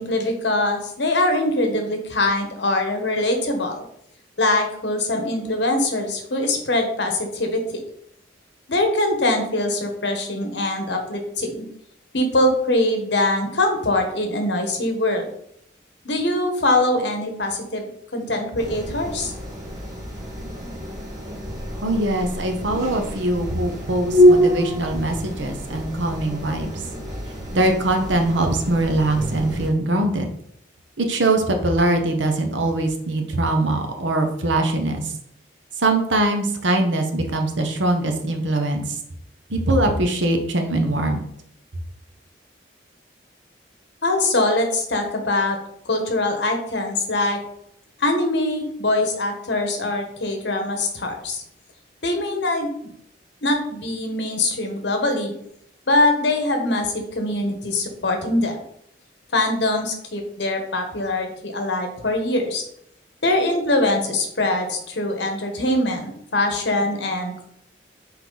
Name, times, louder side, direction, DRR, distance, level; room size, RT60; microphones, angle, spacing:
voice 1, 0.0-3.8 4.4-7.8 8.7-11.6 12.1-15.2 16.0-19.3 44.0-45.6 45.8-47.4 48.0-51.4 52.0-52.9 53.4-55.3 55.9-58.5 59.3-62.6 63.2-67.4, left 2 dB, 70° left, 4 dB, 1.2 m, -23 dB
sound 1, 18.6-29.7, equal, 15° right, 1.7 m, -25 dB
voice 2, 21.8-26.8 27.5-30.3 31.0-35.0 35.8-38.8 39.5-41.2, right 2 dB, 80° right, 4 dB, 1.0 m, -22 dB
5.9 x 4.4 x 3.9 m, 0.72 s
head